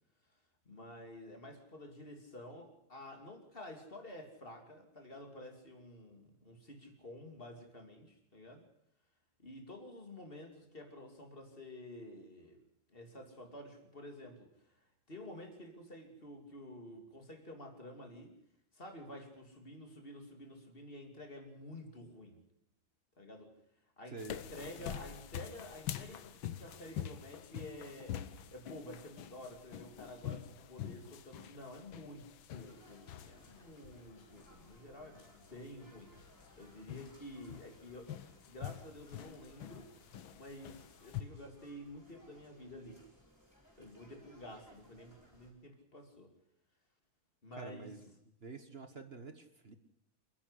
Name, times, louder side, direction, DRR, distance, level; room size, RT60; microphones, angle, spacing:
voice 1, 0.6-8.7 9.4-12.6 12.9-18.3 18.7-22.4 23.2-23.5 24.0-24.2 24.5-36.1 36.6-38.1 38.5-39.9 40.4-43.0 43.8-46.3 47.4-47.9, left 1 dB, 25° left, 5 dB, 2.8 m, -50 dB
voice 2, 24.1-24.4 24.8-25.0 47.5-48.1 48.4-49.7, right 4 dB, 35° right, 9 dB, 1.3 m, -48 dB
sound 1, 24.2-41.2, left 11 dB, 80° left, 1.8 m, -46 dB
sound 2, 32.6-45.5, equal, 10° left, 6.3 m, -63 dB
28.0 x 10.5 x 9.9 m, 0.78 s
omnidirectional pair, 2.2 m